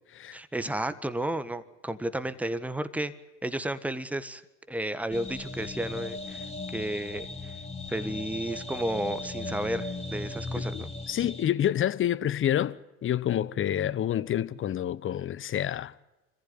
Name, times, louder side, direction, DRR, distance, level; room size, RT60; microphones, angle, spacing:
voice 1, 0.3-3.1 3.4-4.4 4.7-6.4 6.7-7.5 7.9-10.9, right 1 dB, 5° right, 1.6 m, -32 dB
sound 1, 5.1-11.4, left 3 dB, 15° left, 3.4 m, -37 dB
voice 2, 10.7-15.9, left 11 dB, 35° left, 1.0 m, -28 dB
25.5 x 15.0 x 9.6 m
hypercardioid pair, 85°, 38 cm